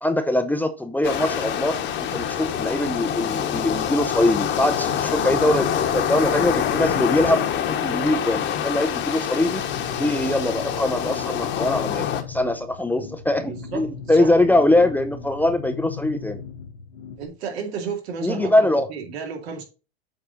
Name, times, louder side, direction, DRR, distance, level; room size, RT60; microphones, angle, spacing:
voice 1, 0.0-7.4 7.7-9.6 10.0-16.4 18.2-18.9, left 1 dB, 5° left, 0.5 m, -22 dB
sound 1, 1.0-12.2, left 9 dB, 35° left, 1.1 m, -25 dB
sound 2, 9.3-17.3, left 7 dB, 85° left, 1.2 m, -37 dB
voice 2, 13.4-14.3 17.2-19.6, right 5 dB, 75° right, 2.4 m, -33 dB
7.9 x 4.3 x 4.0 m
supercardioid pair, 115°, 32 cm